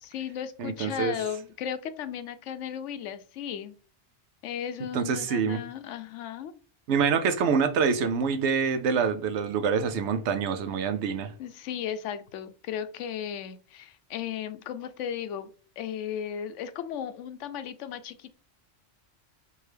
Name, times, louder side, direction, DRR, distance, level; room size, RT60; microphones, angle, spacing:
voice 1, 0.0-3.8 4.4-6.5 11.4-15.5 15.8-18.4, left 9 dB, 85° left, 0.9 m, -35 dB
voice 2, 0.6-1.1 4.9-5.6 6.9-11.3, right 6 dB, 75° right, 0.9 m, -26 dB
4.7 x 2.7 x 3.3 m
omnidirectional pair, 1.2 m